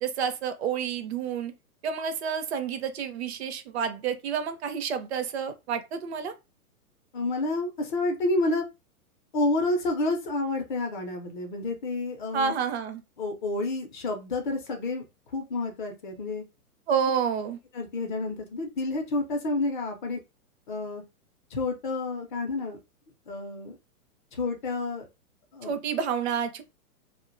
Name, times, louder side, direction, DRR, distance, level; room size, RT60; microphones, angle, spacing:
voice 1, 0.0-1.5 1.8-6.3 12.3-13.0 16.9-17.6 25.6-26.6, right 7 dB, 45° right, 0.5 m, -29 dB
voice 2, 7.1-8.6 9.3-12.5 13.2-15.0 15.3-16.4 17.7-20.2 20.7-21.0 21.5-22.8 23.3-23.8 24.3-25.0 25.5-25.7, left 2 dB, 35° left, 0.5 m, -29 dB
2.4 x 2.1 x 2.5 m
hypercardioid pair, 125°, 45 cm